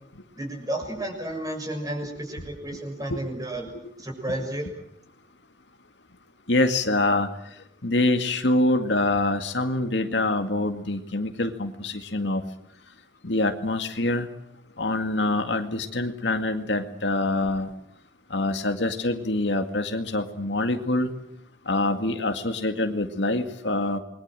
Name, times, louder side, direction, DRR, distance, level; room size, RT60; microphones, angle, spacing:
voice 1, 0.4-4.7, right 1 dB, 20° right, 4 dB, 6.6 m, -32 dB
voice 2, 6.5-7.3 7.8-12.4 13.2-14.3 14.8-17.7 18.3-21.1 21.7-24.0, left 2 dB, 75° left, 6 dB, 2.1 m, -25 dB
28.5 x 22.0 x 7.6 m, 0.76 s
head